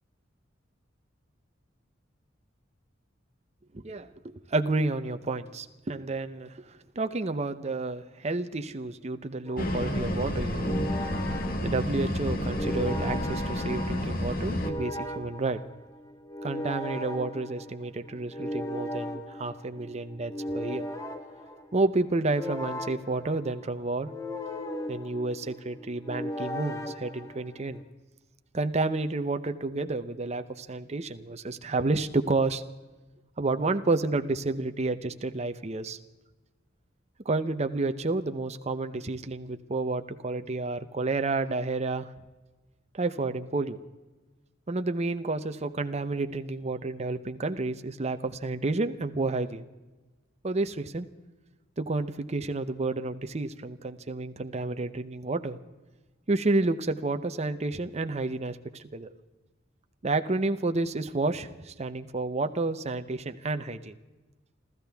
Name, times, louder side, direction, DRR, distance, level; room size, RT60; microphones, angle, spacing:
voice 1, 3.7-10.8 11.6-15.6 16.4-20.8 21.7-24.1 24.9-27.8 28.5-32.6 33.4-36.0 37.2-42.1 42.9-43.8 44.7-49.6 50.4-51.1 51.8-55.6 56.3-59.1 60.0-63.9, right 3 dB, 35° right, 9 dB, 0.7 m, -30 dB
sound 1, 9.5-27.8, equal, 15° left, 1.4 m, -38 dB
sound 2, 9.6-14.7, left 1 dB, 50° left, 1.6 m, -30 dB
29.5 x 13.5 x 3.5 m, 1.2 s
head